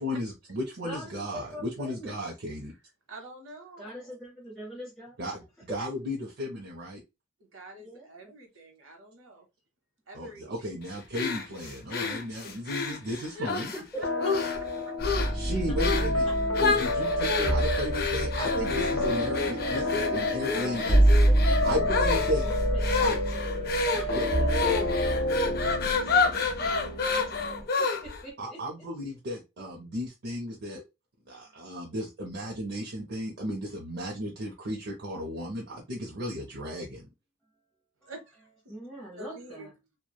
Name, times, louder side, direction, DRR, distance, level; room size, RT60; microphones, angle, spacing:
voice 1, 0.0-2.7 5.2-7.0 10.1-13.7 15.3-16.2 16.6-21.0 21.6-22.4 23.0-23.2 24.1-24.3 28.4-30.8 31.3-37.1, equal, 55° right, -1 dB, 0.6 m, -34 dB
voice 2, 0.8-2.2 3.8-5.2 5.7-5.8 7.8-8.3 13.5-15.3 15.7-15.8 20.6-22.4 22.7-28.9 31.4-31.5 38.0-38.1 38.7-39.7, equal, 5° left, -5 dB, 0.7 m, -43 dB
voice 3, 3.1-4.1 7.4-9.5 10.1-10.7 13.3-13.5 14.0-14.1 16.5-16.6 17.0-17.2 38.1-38.8 39.2-39.7, right 1 dB, 75° right, 3 dB, 0.9 m, -47 dB
sound 1, 11.1-13.8 14.2-14.7 15.0-15.4 15.8-16.1 16.5-28.2, left 4 dB, 50° left, 0.5 m, -29 dB
sound 2, 14.0-26.4, left 2 dB, 80° left, 0.8 m, -31 dB
sound 3, 15.0-27.6, right 1 dB, 30° left, 1.0 m, -28 dB
3.0 x 2.2 x 2.2 m, 0.24 s
head